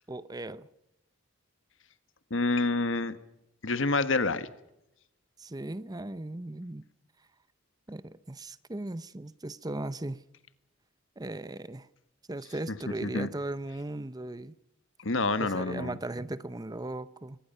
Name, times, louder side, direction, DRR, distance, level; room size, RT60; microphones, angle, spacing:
voice 1, 0.1-0.7 5.4-6.8 7.9-10.2 11.2-11.9 12.3-14.5 15.4-17.4, right 2 dB, 20° right, 0.7 m, -37 dB
voice 2, 2.3-3.1 3.6-4.5 13.0-13.3 15.0-16.0, left 3 dB, 70° left, 1.5 m, -27 dB
24.5 x 21.0 x 5.6 m
head